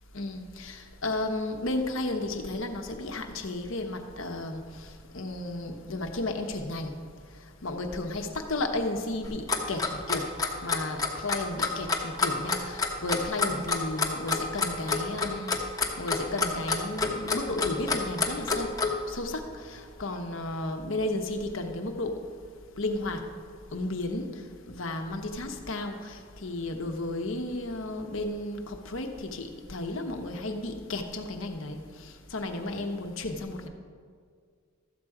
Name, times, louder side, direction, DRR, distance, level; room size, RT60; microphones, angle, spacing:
voice 1, 0.1-4.6 5.1-6.9 7.6-10.3 10.6-15.5 16.0-18.8 19.1-22.2 22.8-23.2 23.7-24.3 24.7-31.8 32.3-33.7, left 2 dB, 65° left, 4 dB, 1.1 m, -33 dB
Clock, 9.2-18.9, left 4 dB, 15° left, 0.9 m, -27 dB
13.5 x 7.8 x 4.8 m, 2.1 s
head